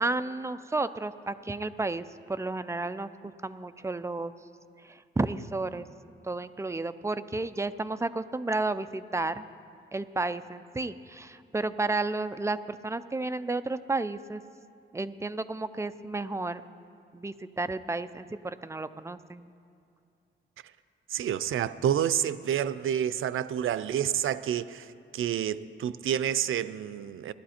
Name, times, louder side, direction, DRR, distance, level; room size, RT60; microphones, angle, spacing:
voice 1, 0.0-3.1 3.4-4.3 4.8-5.9 6.2-9.4 9.9-14.4 14.9-16.6 17.1-19.5, right 2 dB, 15° right, 0.4 m, -32 dB
voice 2, 21.1-24.9 25.1-27.3, right 10 dB, 85° right, 0.5 m, -29 dB
17.0 x 12.0 x 4.3 m
wide cardioid pair, 125°, 20 cm